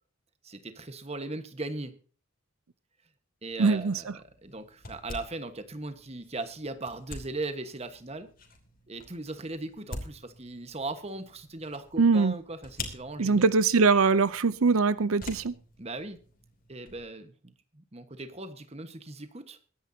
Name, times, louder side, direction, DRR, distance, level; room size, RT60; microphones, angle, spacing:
voice 1, 0.4-1.9 3.4-8.3 8.9-13.5 15.8-16.2 16.7-19.8, right 2 dB, 30° right, 1.3 m, -38 dB
sound 1, 3.5-17.1, left 2 dB, 45° left, 2.9 m, -47 dB
voice 2, 3.6-4.0 12.0-12.3 13.2-15.5, right 4 dB, 85° right, 0.6 m, -22 dB
22.5 x 10.5 x 2.8 m
head